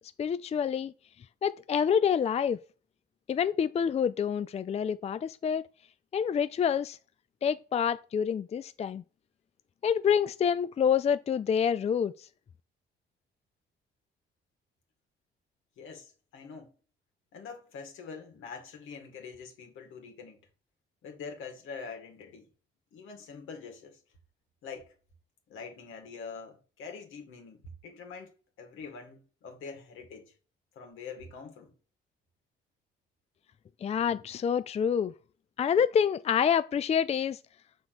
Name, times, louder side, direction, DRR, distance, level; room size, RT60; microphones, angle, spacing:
voice 1, 0.2-0.9 1.4-2.6 3.3-5.6 6.1-7.0 7.4-9.0 9.8-12.1 33.8-35.1 35.6-37.4, left 7 dB, 35° left, 0.4 m, -27 dB
voice 2, 15.8-16.7 17.3-20.4 21.0-22.5 22.9-24.0 24.6-24.9 25.5-28.3 28.6-30.3 30.8-31.7, left 5 dB, 85° left, 2.3 m, -44 dB
6.8 x 4.0 x 6.0 m
cardioid pair, 90°, 20 cm